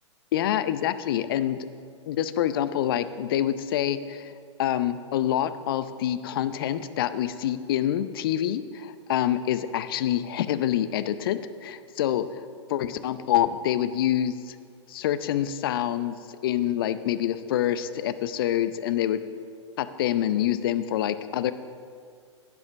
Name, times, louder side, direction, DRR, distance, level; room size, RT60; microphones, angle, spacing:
voice 1, 0.3-1.7 2.1-4.3 4.6-12.4 12.7-14.6 14.9-16.2 16.4-19.2 19.8-21.5, left 11 dB, 50° left, 13 dB, 0.6 m, -26 dB
10.5 x 9.6 x 6.1 m, 2.2 s
figure-of-eight pair, 110°, 16 cm